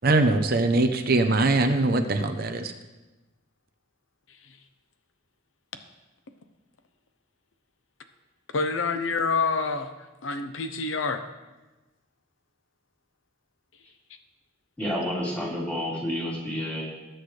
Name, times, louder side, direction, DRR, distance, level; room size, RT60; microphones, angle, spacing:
voice 1, 0.0-2.7, right 2 dB, 50° right, 7 dB, 0.7 m, -22 dB
voice 2, 8.5-9.9 10.2-11.2, left 4 dB, 80° left, 8 dB, 0.8 m, -27 dB
voice 3, 14.8-16.8, equal, 5° left, -6 dB, 3.3 m, -29 dB
19.5 x 7.9 x 3.3 m, 1.1 s
head